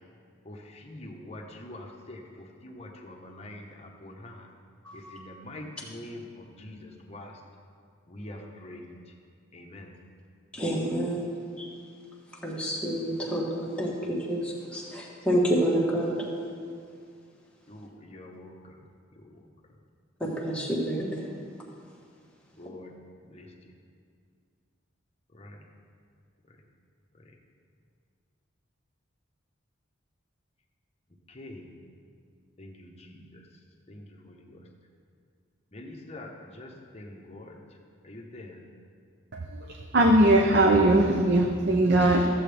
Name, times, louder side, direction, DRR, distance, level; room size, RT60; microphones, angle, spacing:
voice 1, 0.5-4.5 4.9-7.3 8.1-9.0 9.5-9.9 17.7-18.7 19.2-19.4 22.6-22.9 23.3-23.5 25.3-25.6 31.3-31.7 32.6-33.4 33.9-34.6 35.7-37.6 38.0-38.6, left 1 dB, 30° left, 1 dB, 0.9 m, -45 dB
voice 2, 10.5-11.3 11.6-11.7 12.4-16.3 20.2-21.3, equal, 5° left, -4 dB, 1.4 m, -28 dB
voice 3, 39.9-42.3, right 1 dB, 55° right, 2 dB, 0.6 m, -20 dB
14.0 x 7.7 x 3.4 m, 2.2 s
head